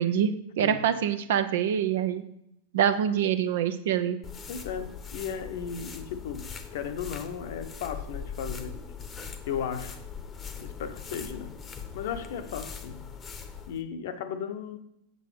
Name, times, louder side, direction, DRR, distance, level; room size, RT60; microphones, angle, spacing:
voice 1, 0.0-2.2 2.7-4.2, right 9 dB, 55° right, 0.6 m, -25 dB
sound 1, 4.2-13.8, left 6 dB, 20° left, 0.9 m, -41 dB
voice 2, 4.5-8.8 9.5-10.0 10.6-11.6 11.9-13.1 13.7-14.8, left 7 dB, 55° left, 0.8 m, -35 dB
7.8 x 7.5 x 5.0 m
figure-of-eight pair, 90°, 0 cm